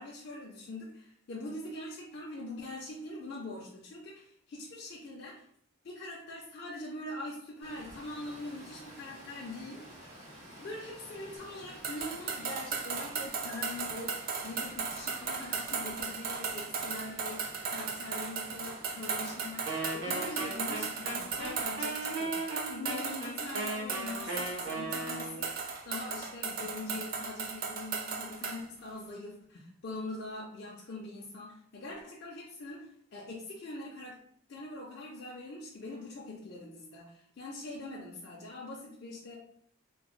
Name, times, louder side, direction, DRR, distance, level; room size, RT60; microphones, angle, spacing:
voice 1, 0.0-5.4 5.8-10.2 10.6-34.2 34.5-39.4, left 2 dB, 50° left, -3 dB, 0.4 m, -43 dB
Water, 7.6-21.7, equal, 85° right, 1.4 m, -51 dB
sound 1, 11.8-28.6, right 5 dB, 45° right, 0.3 m, -37 dB
Wind instrument woodwind instrument, 19.6-25.5, right 2 dB, 65° right, 0.8 m, -37 dB
2.9 x 2.0 x 3.0 m, 0.65 s
head